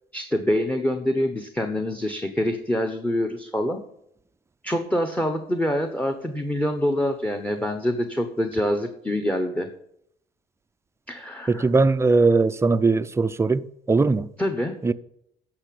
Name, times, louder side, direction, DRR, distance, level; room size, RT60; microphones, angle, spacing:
voice 1, 0.1-3.8 4.6-9.7 11.1-11.7 14.4-14.9, left 1 dB, 10° left, 1.0 m, -25 dB
voice 2, 11.5-14.3 14.8-14.9, right 3 dB, 15° right, 0.5 m, -20 dB
9.9 x 6.8 x 8.4 m
cardioid pair, 110°, 17 cm